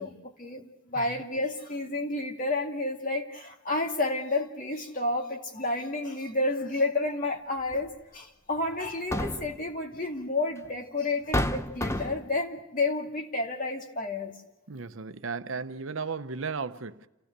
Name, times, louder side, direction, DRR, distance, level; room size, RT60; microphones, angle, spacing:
voice 1, 0.0-14.3, left 2 dB, 40° left, 2.3 m, -30 dB
sound 1, 7.7-7.9 8.8-9.6 10.7-10.8 11.3-12.3, left 1 dB, 15° left, 0.7 m, -29 dB
voice 2, 14.7-17.1, right 5 dB, 70° right, 0.8 m, -35 dB
29.0 x 16.5 x 6.7 m
head